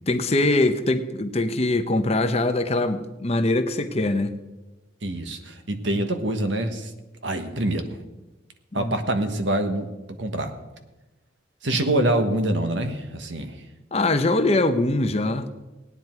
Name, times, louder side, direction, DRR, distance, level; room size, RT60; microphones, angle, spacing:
voice 1, 0.1-4.3 8.7-9.0 13.9-15.5, left 2 dB, 35° left, 8 dB, 0.8 m, -22 dB
voice 2, 5.0-6.9 7.2-8.0 8.7-9.9 10.2-10.5 11.6-13.6, right 1 dB, 75° right, 7 dB, 1.4 m, -25 dB
18.5 x 9.6 x 4.6 m, 1.1 s
head